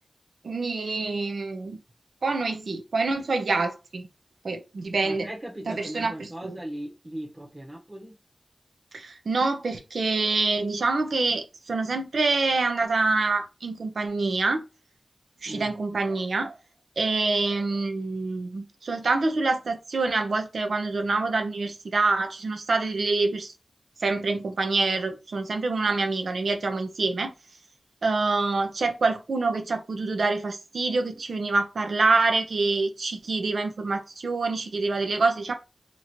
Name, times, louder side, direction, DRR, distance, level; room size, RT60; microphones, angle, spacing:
voice 1, 0.4-1.8 2.2-4.1 4.4-5.3 5.7-6.6 8.9-14.6 15.4-16.5 17.0-23.5 24.0-27.3 28.0-35.5, right 3 dB, 85° right, 0.6 m, -26 dB
voice 2, 4.8-8.1 15.5-15.7, right 1 dB, 35° right, 1.1 m, -38 dB
3.0 x 2.6 x 4.3 m
wide cardioid pair, 60°, 0 cm